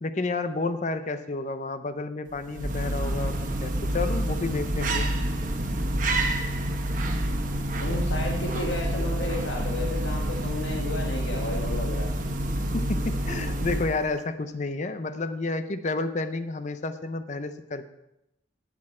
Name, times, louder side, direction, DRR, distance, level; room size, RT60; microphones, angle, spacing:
voice 1, 0.0-5.1 12.7-17.9, left 3 dB, 40° left, 11 dB, 0.6 m, -30 dB
sound 1, 2.3-14.1, right 1 dB, 45° right, 1.0 m, -28 dB
voice 2, 7.8-12.1, left 2 dB, 90° left, 0 dB, 1.4 m, -33 dB
12.0 x 8.5 x 4.3 m, 0.86 s
head